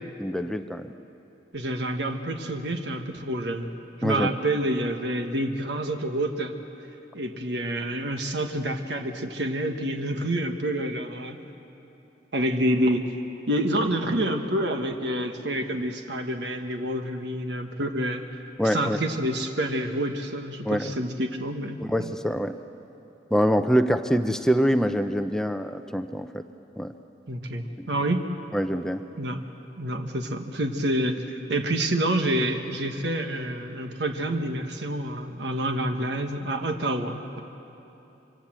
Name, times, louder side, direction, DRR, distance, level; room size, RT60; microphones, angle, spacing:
voice 1, 0.2-0.9 4.0-4.3 18.6-19.0 20.7-21.0 21.8-22.6 23.3-26.4 26.8-26.9 27.8-27.9 28.5-29.0, equal, 5° left, 8 dB, 0.6 m, -25 dB
voice 2, 1.5-3.7 4.0-6.5 7.1-11.4 12.3-13.1 13.5-18.2 18.6-22.1 27.3-28.3 29.2-29.4 29.8-37.4, right 1 dB, 70° right, 5 dB, 1.4 m, -28 dB
26.0 x 25.0 x 7.5 m, 3.0 s
head